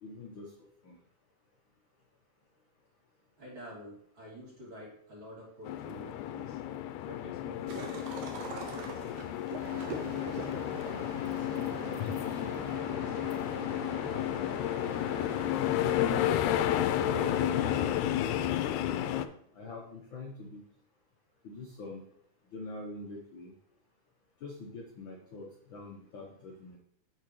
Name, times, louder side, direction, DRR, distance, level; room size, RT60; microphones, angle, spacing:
voice 1, 0.0-0.5 0.8-1.0 12.0-12.1 12.9-13.0 15.7-16.6 16.9-18.2 18.5-20.6 21.4-22.0 22.5-23.5 24.4-26.8, left 3 dB, 65° left, 0 dB, 1.3 m, -44 dB
voice 2, 3.4-6.6 7.0-8.0 8.3-10.9 11.3-12.2 12.8-13.5, equal, 40° right, -6 dB, 3.6 m, -50 dB
sound 1, 5.7-19.3, left 12 dB, 90° left, 2.0 m, -32 dB
sound 2, 7.7-12.8, right 4 dB, 80° right, 2.4 m, -44 dB
sound 3, 9.6-17.9, right 2 dB, 60° right, 2.4 m, -44 dB
8.5 x 6.7 x 3.1 m, 0.68 s
omnidirectional pair, 3.4 m